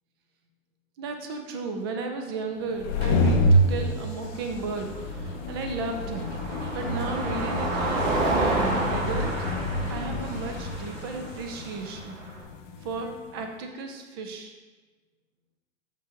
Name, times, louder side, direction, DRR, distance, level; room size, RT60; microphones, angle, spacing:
voice 1, 1.0-6.3 6.7-9.4 9.9-12.2 12.8-14.5, right 3 dB, 20° right, 4 dB, 0.4 m, -34 dB
sound 1, 2.7-13.1, left 1 dB, 35° left, 0.6 m, -28 dB
Car passing by, 4.2-12.4, right 2 dB, 75° right, 2.0 m, -31 dB
6.4 x 5.3 x 3.8 m, 1.3 s
hypercardioid pair, 135°, 40 cm